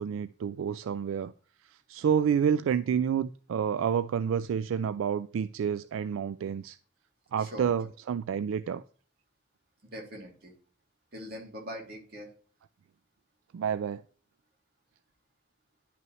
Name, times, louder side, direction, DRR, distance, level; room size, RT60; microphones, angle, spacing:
voice 1, 0.0-1.3 1.7-6.8 7.3-8.8 13.5-14.0, right 7 dB, 85° right, 0.3 m, -29 dB
voice 2, 7.4-7.7 9.8-10.5 11.1-12.3, equal, 50° right, 2.7 m, -42 dB
10.5 x 5.5 x 3.1 m
head